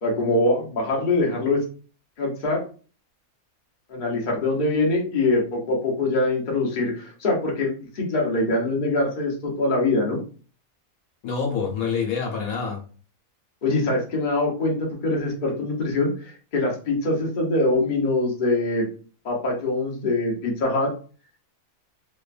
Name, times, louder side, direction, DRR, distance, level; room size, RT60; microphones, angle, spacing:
voice 1, 0.0-1.6 2.2-2.6 3.9-10.2 13.6-18.9 19.2-20.9, left 2 dB, 40° left, -2 dB, 0.8 m, -23 dB
voice 2, 11.2-12.8, left 5 dB, 75° left, -1 dB, 1.3 m, -26 dB
3.1 x 2.1 x 2.4 m, 0.39 s
omnidirectional pair, 1.5 m